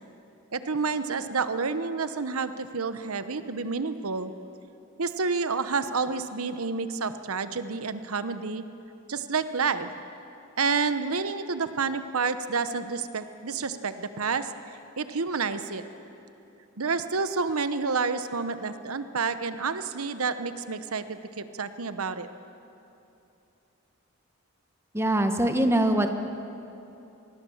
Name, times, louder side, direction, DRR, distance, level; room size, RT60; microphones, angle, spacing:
voice 1, 0.5-4.3 5.0-8.6 9.1-9.9 10.6-14.5 15.0-15.8 16.8-22.3, right 4 dB, 90° right, 11 dB, 1.0 m, -29 dB
voice 2, 24.9-26.1, right 1 dB, 10° right, 6 dB, 1.2 m, -23 dB
26.0 x 20.5 x 7.2 m, 2.9 s
head